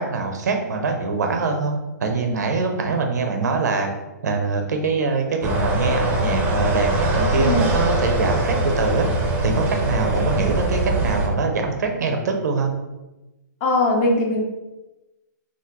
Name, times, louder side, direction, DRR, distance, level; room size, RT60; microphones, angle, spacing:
voice 1, 0.0-1.7 2.0-3.9 4.2-9.1 9.4-12.7, right 4 dB, 70° right, 4 dB, 0.5 m, -23 dB
sound 1, 5.4-11.3, right 1 dB, 20° right, 0.5 m, -22 dB
voice 2, 7.4-7.7 13.6-14.4, left 2 dB, 35° left, 0 dB, 0.7 m, -20 dB
3.5 x 2.1 x 2.9 m, 1.0 s
hypercardioid pair, 125°, 10 cm